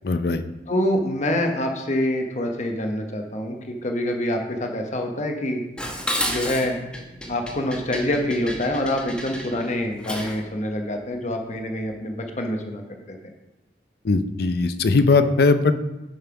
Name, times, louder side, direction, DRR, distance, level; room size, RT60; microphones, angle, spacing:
voice 1, 0.0-0.4 14.0-15.8, left 3 dB, 60° left, 10 dB, 0.6 m, -19 dB
voice 2, 0.7-5.6 6.3-6.8 7.3-13.2, left 1 dB, 40° left, 3 dB, 1.0 m, -26 dB
Dishes pots and pans, 5.8-10.5, equal, 5° left, 1.0 m, -31 dB
7.5 x 5.6 x 5.8 m, 1.0 s
head